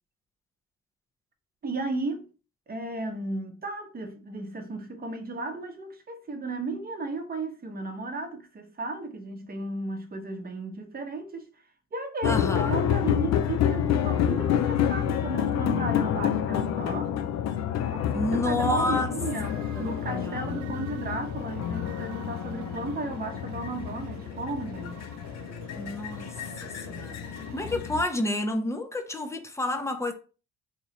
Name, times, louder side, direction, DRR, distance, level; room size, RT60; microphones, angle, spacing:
voice 1, 1.6-2.3 2.7-11.5 11.9-17.1 17.9-25.0 27.3-27.4, right 2 dB, 30° right, 0.8 m, -34 dB
sound 1, 12.2-28.0, left 10 dB, 60° left, 0.4 m, -29 dB
voice 2, 12.2-12.8 18.1-19.2 19.8-20.6 25.8-26.3 26.6-27.2 27.5-30.1, left 1 dB, 10° left, 0.5 m, -29 dB
sound 2, 19.2-27.8, right 9 dB, 70° right, 0.5 m, -49 dB
2.9 x 2.3 x 4.1 m
cardioid pair, 90°, 30 cm